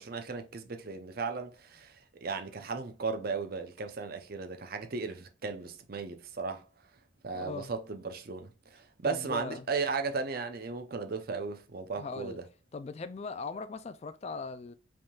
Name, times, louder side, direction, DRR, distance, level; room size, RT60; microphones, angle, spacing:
voice 1, 0.0-2.0 2.2-6.6 7.2-12.4, right 4 dB, 50° right, 0.6 m, -36 dB
voice 2, 7.3-7.7 9.0-9.7 12.0-12.4 12.7-14.7, left 4 dB, 35° left, 0.3 m, -39 dB
5.2 x 3.6 x 2.3 m
head